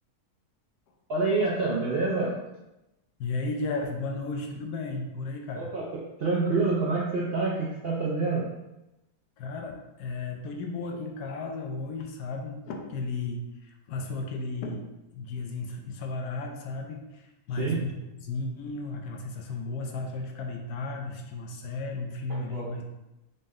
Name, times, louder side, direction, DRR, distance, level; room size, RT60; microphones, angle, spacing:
voice 1, 1.1-2.4 5.5-8.5 17.6-17.8 22.3-22.7, right 3 dB, 70° right, -4 dB, 0.5 m, -27 dB
voice 2, 3.2-5.7 9.4-14.8 15.1-22.9, left 3 dB, 80° left, 2 dB, 1.1 m, -34 dB
4.0 x 2.1 x 3.5 m, 0.94 s
omnidirectional pair, 1.7 m